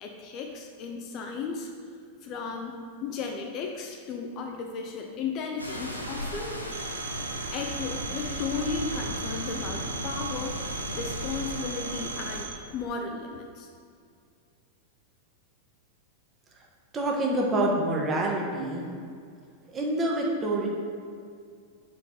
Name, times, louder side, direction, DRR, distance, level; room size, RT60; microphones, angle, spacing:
voice 1, 0.0-1.7 2.2-2.7 3.0-6.6 7.5-10.6 10.9-13.7, left 5 dB, 40° left, 2 dB, 0.5 m, -35 dB
sound 1, 5.6-12.4, equal, 90° left, 0.6 m, -35 dB
Telephone, 6.7-12.6, right 6 dB, 60° right, 0.4 m, -39 dB
voice 2, 16.9-18.8 19.7-20.7, right 1 dB, 20° right, -1 dB, 1.1 m, -26 dB
4.7 x 4.5 x 5.4 m, 2.2 s
figure-of-eight pair, 90°, 0 cm